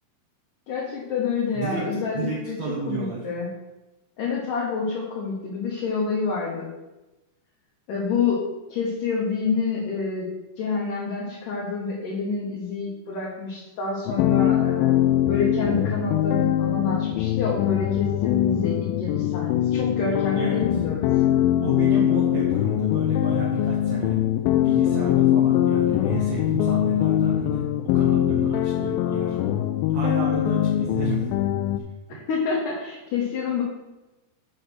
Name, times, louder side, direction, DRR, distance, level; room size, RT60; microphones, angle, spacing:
voice 1, 0.7-3.5 4.2-6.7 7.9-8.4 8.7-15.0 15.3-21.4 32.1-33.6, left 5 dB, 65° left, -4 dB, 2.5 m, -28 dB
voice 2, 1.5-3.2 20.4-20.6 21.6-24.2 24.5-29.4 29.9-31.2, right 5 dB, 80° right, -3 dB, 1.5 m, -32 dB
sound 1, 14.1-31.8, left 12 dB, 85° left, 2.1 m, -22 dB
7.8 x 4.8 x 6.2 m, 1.0 s
omnidirectional pair, 4.6 m